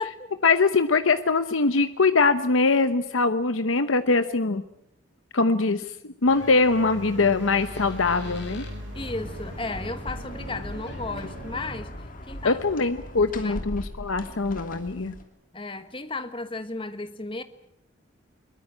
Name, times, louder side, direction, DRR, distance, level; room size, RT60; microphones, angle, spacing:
voice 1, 0.4-4.6 5.3-8.6 12.4-15.2, left 3 dB, 90° left, 10 dB, 1.0 m, -22 dB
Door, 6.2-8.8 10.6-10.7 10.9-11.2, left 3 dB, 60° left, 6.9 m, -47 dB
sound 1, 6.3-11.8, equal, 70° right, 6.9 m, -39 dB
voice 2, 8.9-11.9 12.3-12.6 13.2-13.6 15.5-17.4, left 3 dB, 25° left, 10 dB, 1.3 m, -34 dB
sound 2, 9.0-15.2, left 1 dB, 45° left, 3.0 m, -39 dB
22.5 x 21.5 x 8.8 m, 0.79 s
head